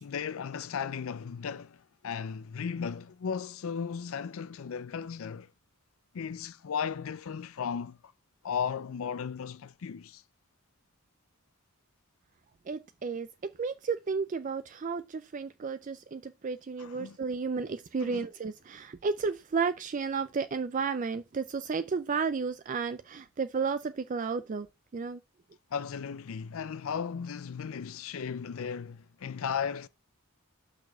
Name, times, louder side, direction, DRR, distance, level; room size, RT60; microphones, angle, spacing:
voice 1, 0.0-5.5 6.1-8.1 8.4-10.2 16.8-17.2 18.0-18.2 25.7-29.9, left 7 dB, 70° left, 0.4 m, -36 dB
voice 2, 12.7-24.7 24.9-25.2, right 5 dB, 35° right, 0.4 m, -33 dB
6.0 x 4.9 x 6.6 m
head